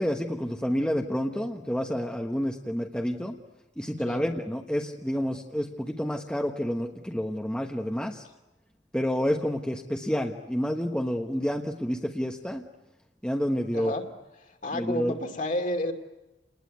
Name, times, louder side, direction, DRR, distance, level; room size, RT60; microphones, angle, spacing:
voice 1, 0.0-3.4 3.8-8.3 8.9-12.7 13.2-13.9 14.7-15.2, equal, 5° left, 2 dB, 1.1 m, -29 dB
voice 2, 13.7-14.1 14.4-15.9, left 1 dB, 45° left, 5 dB, 2.5 m, -31 dB
29.5 x 20.0 x 9.4 m, 1.0 s
head